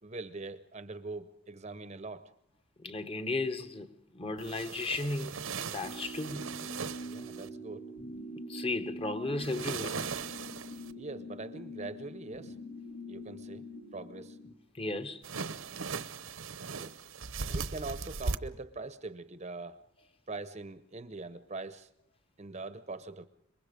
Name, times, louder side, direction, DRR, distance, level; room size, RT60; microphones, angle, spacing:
voice 1, 0.0-2.3 7.0-7.9 10.9-12.5 13.1-14.4 16.8-16.9 17.5-19.8 20.3-21.9 22.4-23.3, right 3 dB, 30° right, 0.8 m, -42 dB
voice 2, 2.8-5.4 5.6-6.5 8.5-10.0 14.7-15.2, left 2 dB, 25° left, 1.1 m, -35 dB
sound 1, 4.4-7.5 9.4-10.9 15.2-18.4, right 5 dB, 70° right, 0.9 m, -38 dB
sound 2, 5.8-14.5, equal, 85° left, 3.5 m, -44 dB
27.0 x 23.0 x 5.1 m
head